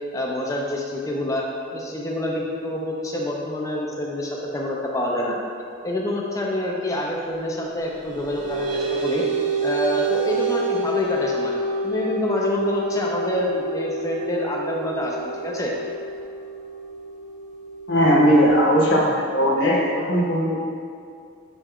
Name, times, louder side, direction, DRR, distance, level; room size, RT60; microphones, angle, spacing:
voice 1, 0.1-1.4 1.7-5.4 5.8-9.2 9.6-11.5 11.8-15.7, left 1 dB, 15° left, -2 dB, 0.5 m, -27 dB
sound 1, 7.9-18.8, right 3 dB, 40° right, 0.6 m, -28 dB
voice 2, 17.9-20.5, equal, 60° left, -3 dB, 0.8 m, -18 dB
6.0 x 2.2 x 3.5 m, 2.4 s
head